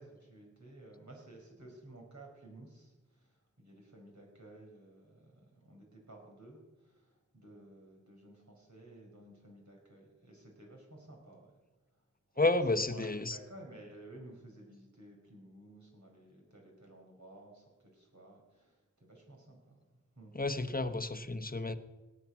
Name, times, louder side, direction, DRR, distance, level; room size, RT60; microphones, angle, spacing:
voice 1, 0.0-11.6 12.3-12.5 12.9-20.3, right 1 dB, 70° right, 5.1 m, -54 dB
voice 2, 12.4-13.4 20.3-21.7, left 2 dB, 30° left, 1.0 m, -31 dB
18.0 x 10.0 x 6.0 m
wide cardioid pair, 40°, 30 cm